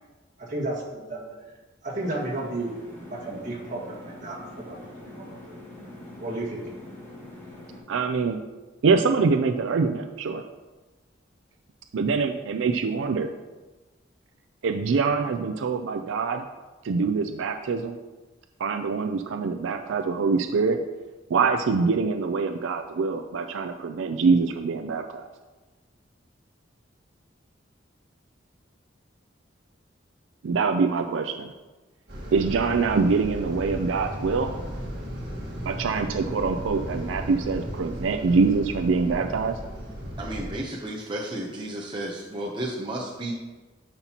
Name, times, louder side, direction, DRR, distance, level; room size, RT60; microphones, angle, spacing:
voice 1, 0.4-1.3 1.8-2.7 3.1-4.8 5.1-5.6 6.2-6.6, right 2 dB, 45° right, -3 dB, 1.9 m, -33 dB
sound 1, 2.0-7.8, left 1 dB, 15° left, 2.0 m, -43 dB
voice 2, 7.9-8.4 8.8-10.4 11.9-13.3 14.6-16.4 16.8-18.0 18.6-20.8 21.3-25.3 30.4-31.5 32.3-34.5 35.6-39.6, right 4 dB, 80° right, 7 dB, 0.4 m, -24 dB
sound 2, 32.1-40.6, equal, 60° right, 1.7 m, -35 dB
voice 3, 40.2-43.3, right 1 dB, 25° right, -2 dB, 0.7 m, -33 dB
10.5 x 5.7 x 2.9 m, 1.2 s
head